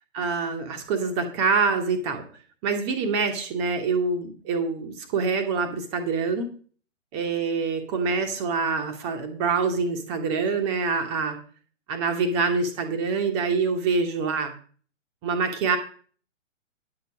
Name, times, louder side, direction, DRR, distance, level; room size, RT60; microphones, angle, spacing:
voice 1, 0.1-2.2 2.6-6.5 7.1-11.4 11.9-14.5 15.2-15.8, right 4 dB, 20° right, 5 dB, 1.2 m, -25 dB
10.0 x 6.8 x 6.2 m, 0.43 s
figure-of-eight pair, 130°, 38 cm